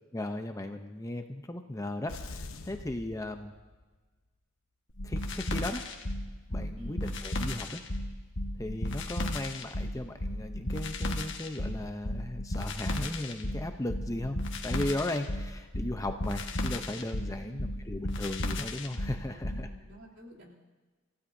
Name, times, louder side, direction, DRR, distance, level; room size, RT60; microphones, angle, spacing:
voice 1, 0.1-3.5 5.0-5.8 6.5-7.8 8.6-19.7, left 1 dB, 15° left, 6 dB, 0.6 m, -36 dB
sound 1, 2.1-4.0, left 2 dB, 70° left, 1.0 m, -44 dB
sound 2, 5.0-19.7, left 1 dB, 55° left, 1.4 m, -34 dB
voice 2, 6.8-7.1 17.4-17.8 19.3-20.5, right 1 dB, 55° right, -2 dB, 3.1 m, -50 dB
28.5 x 15.5 x 2.7 m, 1.3 s
head